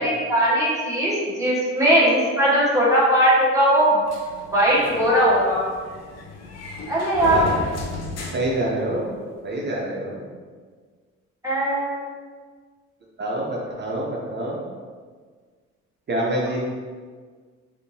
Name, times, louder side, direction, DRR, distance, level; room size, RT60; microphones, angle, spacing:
voice 1, 0.0-4.0 4.5-5.6 6.9-7.5 11.4-12.0, equal, 10° right, -8 dB, 1.2 m, -19 dB
sound 1, 4.1-9.3, left 3 dB, 60° left, 0.6 m, -35 dB
voice 2, 7.2-7.6 8.3-9.1 9.4-10.3 13.2-14.6 16.1-16.6, right 1 dB, 35° right, -3 dB, 0.6 m, -26 dB
3.5 x 2.6 x 2.7 m, 1.5 s
cardioid pair, 90°, 30 cm